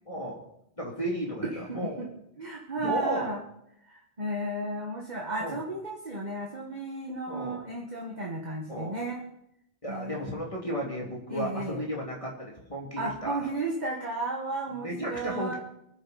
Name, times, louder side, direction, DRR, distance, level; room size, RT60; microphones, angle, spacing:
voice 1, 0.1-0.4 0.8-2.0 2.8-3.3 5.4-5.6 7.3-7.6 8.7-9.0 9.8-13.4 14.8-15.6, equal, 30° left, -2 dB, 2.9 m, -34 dB
voice 2, 1.4-2.1 2.4-3.4 3.9-9.2 9.9-10.5 11.3-11.8 13.0-15.5, right 2 dB, 40° right, -1 dB, 2.0 m, -34 dB
25.0 x 10.5 x 4.3 m, 0.78 s
omnidirectional pair, 1.1 m